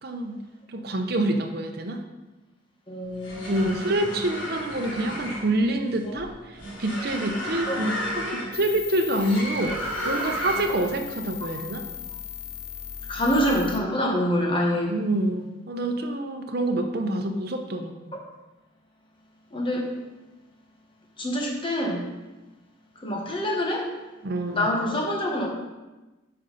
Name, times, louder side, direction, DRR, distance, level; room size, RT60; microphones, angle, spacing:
voice 1, 0.0-0.4 0.7-2.0 3.5-9.7 10.0-11.8 14.9-18.1 24.2-24.7, right 1 dB, 55° right, 4 dB, 0.8 m, -27 dB
voice 2, 2.9-3.8 6.0-6.1 7.7-7.8 10.2-10.3 13.1-15.0 19.5-19.9 21.2-22.0 22.9-23.9 24.5-25.5, equal, 25° left, -1 dB, 1.5 m, -26 dB
sound 1, 3.1-10.9, equal, 85° left, 3.0 m, -32 dB
sound 2, 8.5-13.8, left 8 dB, 60° left, 0.8 m, -38 dB
8.8 x 5.6 x 4.2 m, 1.1 s
head